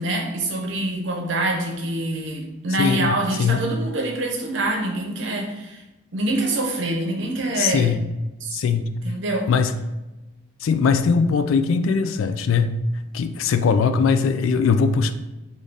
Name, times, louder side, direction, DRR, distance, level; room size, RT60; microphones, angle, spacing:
voice 1, 0.0-5.8 6.1-7.9 8.4-8.6 9.0-9.5, right 2 dB, 65° right, 2 dB, 0.7 m, -25 dB
voice 2, 2.8-3.6 7.6-8.0 8.5-8.9 9.5-9.8 10.6-12.8 13.1-15.1, left 5 dB, 80° left, 11 dB, 0.3 m, -20 dB
3.3 x 2.5 x 3.9 m, 1.0 s
head